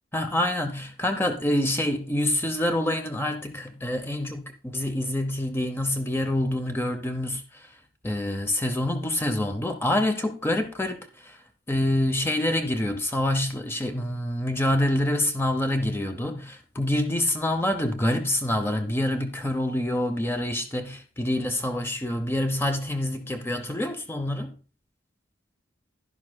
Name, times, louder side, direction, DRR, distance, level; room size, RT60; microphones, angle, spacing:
voice 1, 0.1-7.7 8.0-11.4 11.7-24.5, left 1 dB, 10° left, 0.6 m, -26 dB
11.0 x 11.0 x 2.2 m
head